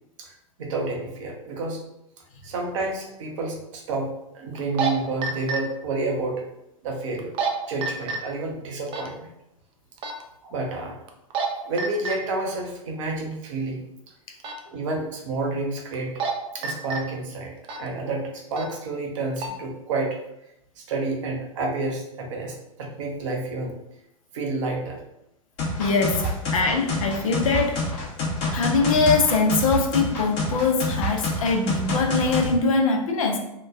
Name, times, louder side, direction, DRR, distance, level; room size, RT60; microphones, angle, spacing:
voice 1, 0.6-1.8 2.4-6.5 6.8-7.3 7.7-9.3 10.4-11.0 11.6-13.9 14.6-16.2 16.5-20.2 20.8-23.8 24.3-25.0, right 2 dB, 60° right, 1 dB, 0.7 m, -29 dB
sound 1, 2.5-2.6 4.6-4.9 5.2-5.6 7.2-7.5 7.8-8.2 8.9-9.1 10.0-10.2 11.1-11.5 11.8-12.1 14.4-14.6 15.9-16.3 16.6-17.0 17.6-17.9 18.5-18.7 19.1-19.5, right 4 dB, 30° right, 0.4 m, -27 dB
sound 2, 25.6-32.5, left 2 dB, 40° left, 0.8 m, -27 dB
voice 2, 25.8-27.9 28.5-33.4, left 4 dB, 75° left, 2 dB, 0.5 m, -22 dB
2.9 x 2.2 x 2.4 m, 0.84 s
figure-of-eight pair, 95°, 18 cm